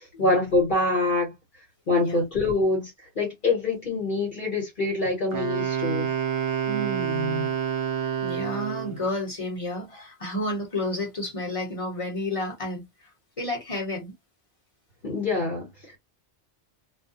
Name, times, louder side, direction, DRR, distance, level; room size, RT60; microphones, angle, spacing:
voice 1, 0.2-1.3 1.9-2.9 3.2-6.1 15.0-16.0, left 2 dB, 50° left, 1.1 m, -25 dB
Wind instrument woodwind instrument, 5.3-9.0, right 8 dB, 60° right, 0.9 m, -28 dB
voice 2, 6.7-7.5 8.2-12.8 13.4-14.1, left 1 dB, 30° left, 1.0 m, -31 dB
2.4 x 2.1 x 2.6 m
omnidirectional pair, 1.2 m